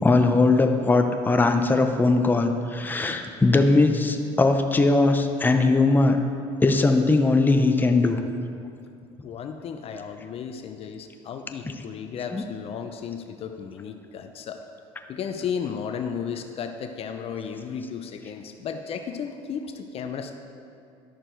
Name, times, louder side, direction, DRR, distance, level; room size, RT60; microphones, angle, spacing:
voice 1, 0.0-6.2 6.6-8.2 12.3-12.4, left 3 dB, 15° left, 5 dB, 0.7 m, -20 dB
voice 2, 9.2-14.6 15.1-20.3, left 7 dB, 50° left, 6 dB, 0.7 m, -34 dB
11.0 x 6.6 x 4.5 m, 2.5 s
supercardioid pair, 90°, 13 cm